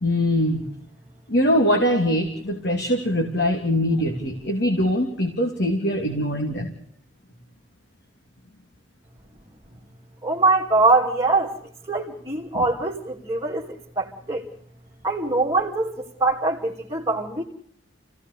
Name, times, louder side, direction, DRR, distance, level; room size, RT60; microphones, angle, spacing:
voice 1, 0.0-0.7 1.3-6.7 12.5-12.6, equal, 55° left, 2 dB, 3.0 m, -22 dB
voice 2, 10.2-11.5 11.9-13.6 14.0-14.5 15.0-17.4, right 3 dB, 20° right, -4 dB, 2.6 m, -23 dB
29.0 x 17.0 x 6.9 m, 0.67 s
head